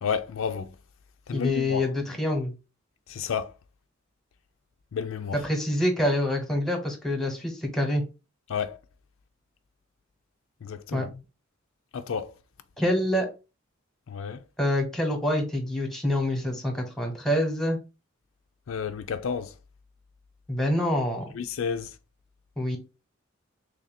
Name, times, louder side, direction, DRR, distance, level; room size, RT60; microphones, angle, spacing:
voice 1, 0.0-0.7 1.3-1.9 3.1-3.5 4.9-5.4 8.5-8.8 10.6-11.2 11.9-12.3 14.1-14.4 18.7-19.5 21.3-21.9, left 6 dB, 80° left, 0.4 m, -31 dB
voice 2, 1.3-2.5 5.3-8.0 10.9-11.0 12.8-13.3 14.6-17.8 20.5-21.3 22.6-22.8, left 1 dB, ahead, 1.0 m, -26 dB
3.4 x 2.6 x 4.1 m
head